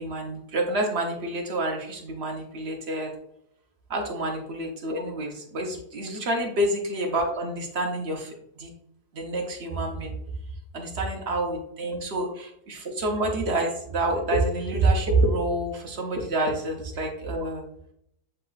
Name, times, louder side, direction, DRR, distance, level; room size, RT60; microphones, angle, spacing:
voice 1, 0.0-3.1 3.9-8.7 9.1-10.2 10.7-17.7, right 2 dB, 60° right, 1 dB, 0.7 m, -27 dB
7.5 x 2.9 x 2.4 m, 0.71 s
omnidirectional pair, 2.0 m